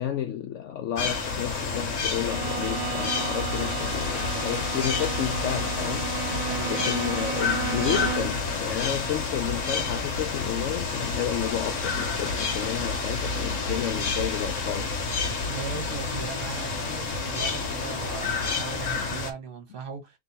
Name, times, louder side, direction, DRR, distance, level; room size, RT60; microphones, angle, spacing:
voice 1, 0.0-6.1 6.7-15.0, left 10 dB, 75° left, 0.7 m, -31 dB
sound 1, 1.0-19.3, left 4 dB, 55° left, 1.2 m, -29 dB
Bowed string instrument, 2.2-8.4, right 9 dB, 85° right, 1.2 m, -34 dB
voice 2, 6.4-6.9 15.4-20.2, right 5 dB, 35° right, 1.1 m, -38 dB
3.4 x 2.9 x 4.1 m
omnidirectional pair, 1.8 m